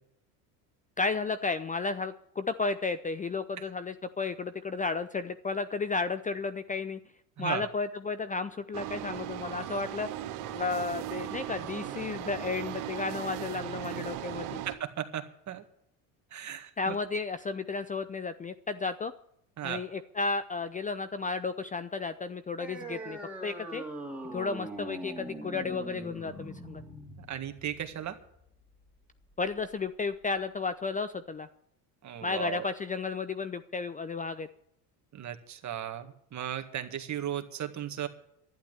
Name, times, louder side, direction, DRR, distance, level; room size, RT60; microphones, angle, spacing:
voice 1, 1.0-7.0 7.4-10.1 10.5-14.6 16.8-19.1 19.6-23.8 24.3-26.8 29.4-31.5 32.2-34.5, left 4 dB, 20° left, 13 dB, 0.6 m, -33 dB
sound 1, 8.7-14.7, right 11 dB, 80° right, 2.1 m, -38 dB
voice 2, 14.8-15.7 16.3-17.0 19.6-19.8 27.3-28.2 32.0-32.7 35.1-38.1, right 10 dB, 40° right, 7 dB, 1.8 m, -36 dB
sound 2, 22.6-29.6, right 1 dB, 5° right, 2.7 m, -42 dB
11.5 x 11.0 x 8.1 m, 0.72 s
supercardioid pair, 95°, 44 cm